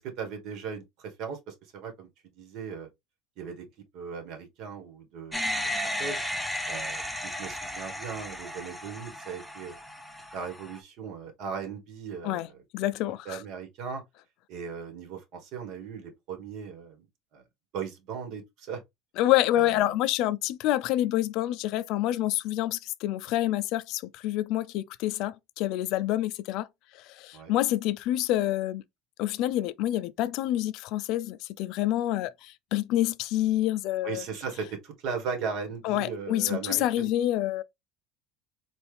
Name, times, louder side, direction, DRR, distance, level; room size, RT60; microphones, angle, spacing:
voice 1, 0.0-2.1 2.4-2.9 3.4-3.6 3.9-5.5 5.8-6.2 6.7-9.7 10.3-12.6 13.2-14.0 14.5-17.0 17.3-17.4 17.7-18.8 19.5-19.9 27.3-27.5 34.0-37.1, right 6 dB, 60° right, 1.6 m, -38 dB
sound 1, 5.3-10.8, equal, ahead, 0.7 m, -34 dB
voice 2, 12.7-13.4 19.2-26.7 26.9-28.8 29.2-34.2 35.8-37.6, left 14 dB, 65° left, 0.4 m, -27 dB
4.3 x 2.5 x 3.4 m
supercardioid pair, 125°, 0 cm